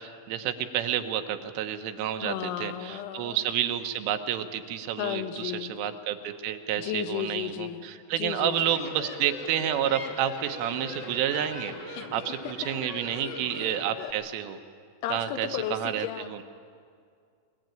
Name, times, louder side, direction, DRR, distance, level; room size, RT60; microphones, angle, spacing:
voice 1, 0.0-2.4 2.6-12.4 12.7-14.6 15.1-16.1, right 10 dB, 85° right, 8 dB, 3.5 m, -30 dB
voice 2, 2.2-3.5 5.0-5.8 6.8-7.8 8.1-8.8 11.9-12.1 13.1-14.1 15.0-16.4, left 10 dB, 75° left, 8 dB, 3.2 m, -34 dB
sound 1, 8.4-14.1, left 2 dB, 50° left, 1.2 m, -41 dB
20.5 x 20.0 x 9.1 m, 2.2 s
omnidirectional pair, 5.7 m